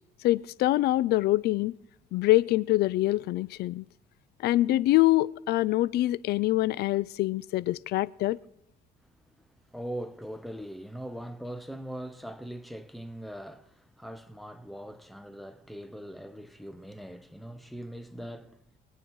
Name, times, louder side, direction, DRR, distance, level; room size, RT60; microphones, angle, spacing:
voice 1, 0.2-1.7 2.1-3.8 4.4-8.4, left 16 dB, 70° left, 0.5 m, -25 dB
voice 2, 9.0-18.6, equal, ahead, 0.9 m, -41 dB
22.5 x 9.1 x 4.6 m
cardioid pair, 110°, 17 cm